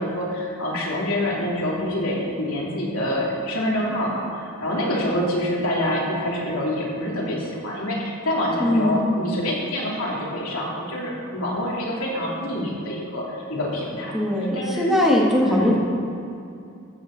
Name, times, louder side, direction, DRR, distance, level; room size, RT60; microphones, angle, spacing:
voice 1, 0.0-14.1 14.4-14.8 15.4-15.8, left 1 dB, 75° left, -4 dB, 3.2 m, -26 dB
voice 2, 8.6-9.1 14.1-15.7, left 1 dB, ahead, -4 dB, 1.7 m, -20 dB
14.5 x 6.8 x 6.7 m, 2.6 s
head